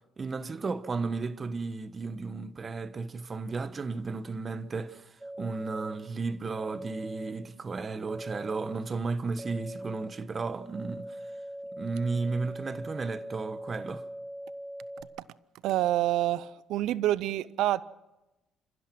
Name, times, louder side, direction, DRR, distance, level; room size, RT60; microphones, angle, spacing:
voice 1, 0.2-11.3 11.7-14.0, right 4 dB, 35° right, 1.2 m, -34 dB
sound 1, 5.2-5.9 6.5-7.3 8.1-8.7 9.4-10.1 10.7-15.0, equal, 10° right, 2.1 m, -41 dB
voice 2, 15.6-17.8, right 13 dB, 75° right, 0.6 m, -27 dB
29.0 x 15.5 x 6.1 m
cardioid pair, 85°, 0 cm